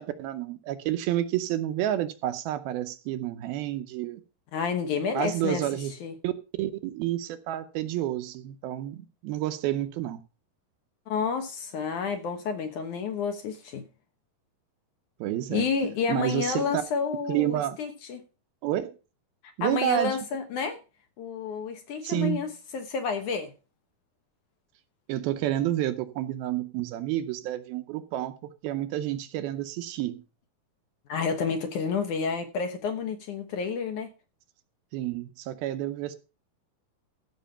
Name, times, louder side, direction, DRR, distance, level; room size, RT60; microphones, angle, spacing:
voice 1, 0.0-4.2 5.1-5.9 6.2-6.3 6.6-10.2 15.2-15.7 16.1-16.8 17.3-17.8 18.6-19.0 19.6-20.2 22.0-22.4 25.1-28.3 28.6-30.2 34.9-36.2, right 13 dB, 75° right, 2.5 m, -29 dB
voice 2, 4.5-5.6 6.0-6.1 11.1-13.9 15.5-18.2 19.6-20.8 21.2-23.5 31.1-34.1, left 5 dB, 65° left, 2.2 m, -30 dB
14.5 x 6.1 x 5.6 m
omnidirectional pair, 4.6 m